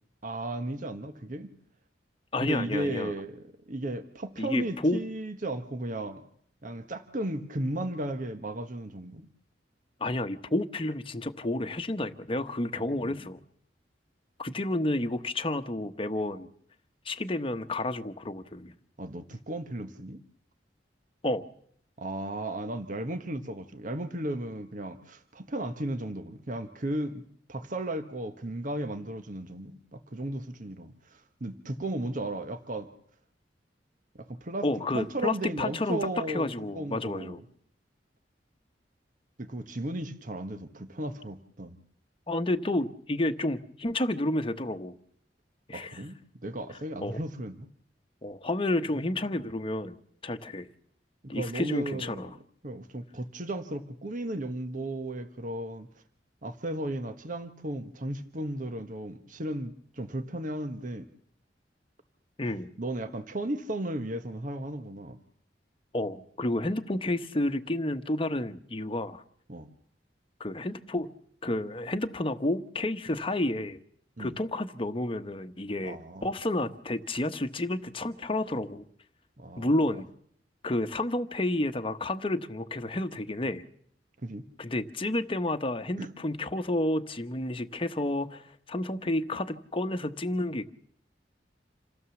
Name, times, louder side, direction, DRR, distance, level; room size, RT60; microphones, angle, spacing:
voice 1, 0.2-1.5 2.4-6.2 6.6-9.2 12.7-13.2 19.0-20.2 22.0-27.2 27.5-32.9 34.1-34.7 34.9-37.4 39.4-41.8 45.7-47.7 51.2-52.3 52.6-55.9 56.4-61.1 62.8-65.2 69.5-69.7 74.2-74.4 75.8-76.3 79.4-80.0 84.2-84.4 86.0-86.1, right 1 dB, 50° right, 8 dB, 1.3 m, -35 dB
voice 2, 2.3-3.1 4.4-5.0 10.0-13.4 14.4-16.5 17.0-18.7 21.2-21.4 34.6-37.4 42.3-45.0 45.7-46.0 47.0-47.2 48.2-50.0 50.2-50.7 51.3-52.3 62.4-62.7 65.9-69.2 70.4-71.1 71.4-73.8 74.2-78.8 79.6-80.1 80.6-83.6 84.6-90.7, left 1 dB, 30° left, 8 dB, 1.1 m, -30 dB
27.5 x 16.0 x 7.2 m, 0.66 s
head